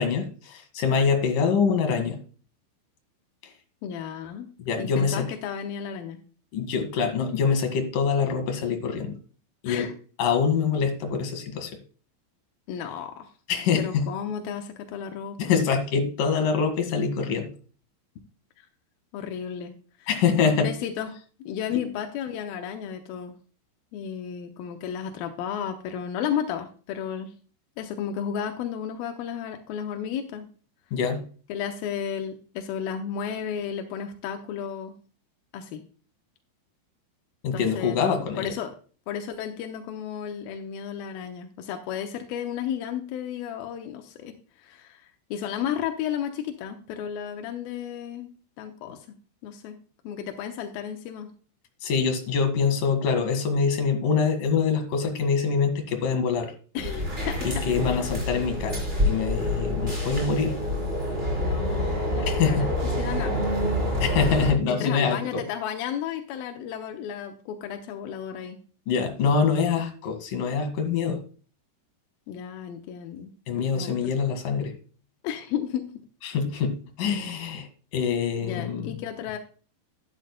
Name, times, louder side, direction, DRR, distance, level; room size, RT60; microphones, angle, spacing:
voice 1, 0.0-2.2 4.6-5.3 6.5-9.2 9.6-9.9 10.2-11.7 13.5-14.1 15.4-17.5 20.1-20.7 21.7-21.8 30.9-31.2 37.4-38.5 51.8-56.5 57.4-60.6 62.3-62.7 64.0-65.4 68.9-71.2 73.5-74.7 76.2-78.9, left 6 dB, 55° left, 4 dB, 2.8 m, -25 dB
voice 2, 3.8-4.5 4.8-6.2 9.7-9.9 12.7-13.3 13.8-15.7 18.6-18.7 19.1-19.7 20.0-20.1 20.6-21.1 21.4-23.3 23.9-27.3 27.8-30.5 31.5-34.9 35.5-35.8 37.5-38.7 39.1-48.3 48.6-49.1 49.4-49.8 50.0-51.3 56.7-58.1 61.4-63.6 64.1-64.2 64.7-68.6 72.3-73.3 73.7-74.1 75.2-75.9 78.4-79.4, left 8 dB, 80° left, 5 dB, 2.1 m, -33 dB
sound 1, 56.8-64.5, left 1 dB, 15° right, 4.0 m, -27 dB
11.5 x 11.0 x 2.2 m, 0.38 s
omnidirectional pair, 5.4 m